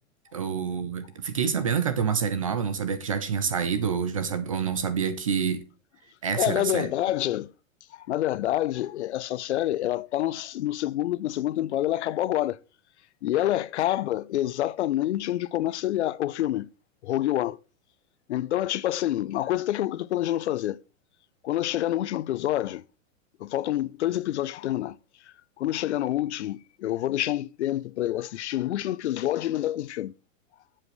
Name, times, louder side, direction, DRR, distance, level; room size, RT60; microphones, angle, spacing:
voice 1, 0.3-5.6 6.2-6.9, right 6 dB, 25° right, 0.4 m, -27 dB
voice 2, 6.3-7.5 7.9-12.6 13.2-16.7 17.0-17.6 18.3-20.8 21.4-22.8 23.4-25.0 25.3-30.1, left 13 dB, 55° left, 0.5 m, -27 dB
11.0 x 7.7 x 3.1 m
supercardioid pair, 180°, 40 cm